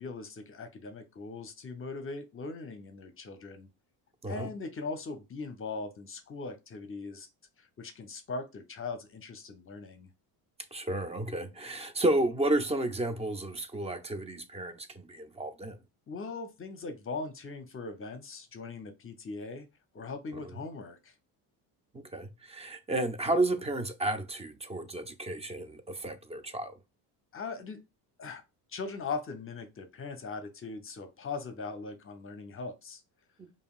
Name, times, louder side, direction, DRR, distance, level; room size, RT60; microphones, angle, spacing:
voice 1, 0.0-3.7 4.3-7.3 7.6-10.1 16.1-19.7 19.9-21.1 27.3-27.8 28.2-28.4 28.7-33.0, left 4 dB, 30° left, 0.7 m, -40 dB
voice 2, 10.7-15.8 22.1-26.7, right 1 dB, 15° right, 0.5 m, -32 dB
5.1 x 2.7 x 2.4 m
supercardioid pair, 95°, 43 cm